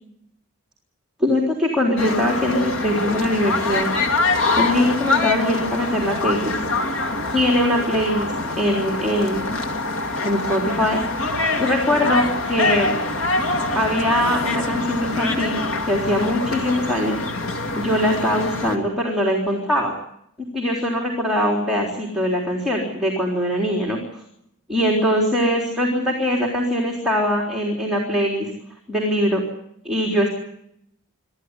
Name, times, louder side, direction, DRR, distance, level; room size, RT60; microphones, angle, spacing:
voice 1, 1.2-3.9 4.6-6.6 6.9-7.0 7.3-9.6 10.2-11.0 11.6-13.0 13.7-17.3 17.7-19.9 20.5-24.0 24.7-28.5 28.9-29.4 29.8-30.3, equal, ahead, -2 dB, 3.9 m, -22 dB
sound 1, 2.0-18.8, left 2 dB, 60° left, 2.3 m, -24 dB
26.0 x 14.5 x 9.8 m, 0.76 s
head